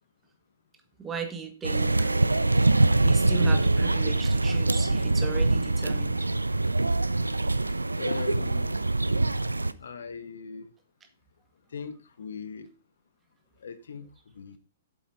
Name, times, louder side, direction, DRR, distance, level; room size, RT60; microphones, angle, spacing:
voice 1, 1.0-1.9 3.0-6.2, right 5 dB, 15° right, 6 dB, 1.9 m, -37 dB
sound 1, 1.6-9.7, right 2 dB, 85° right, 0.5 m, -24 dB
voice 2, 8.0-8.8 9.8-10.7 11.7-12.7 13.6-14.6, left 5 dB, 65° left, 12 dB, 1.2 m, -39 dB
7.9 x 7.2 x 5.1 m, 0.33 s
figure-of-eight pair, 115°, 0 cm